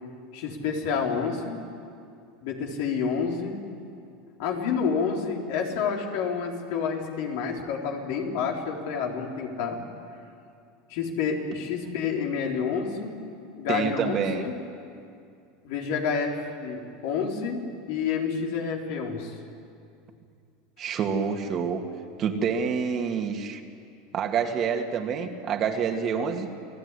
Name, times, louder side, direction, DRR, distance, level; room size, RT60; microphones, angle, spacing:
voice 1, 0.3-1.6 2.4-3.6 4.4-9.8 10.9-13.1 13.6-14.5 15.6-17.6 17.9-19.3, left 6 dB, 70° left, 0 dB, 4.1 m, -29 dB
voice 2, 13.7-14.5 20.8-21.8 22.2-23.6 24.1-26.5, right 6 dB, 40° right, 4 dB, 2.4 m, -27 dB
28.5 x 17.0 x 10.0 m, 2.4 s
supercardioid pair, 125°, 0 cm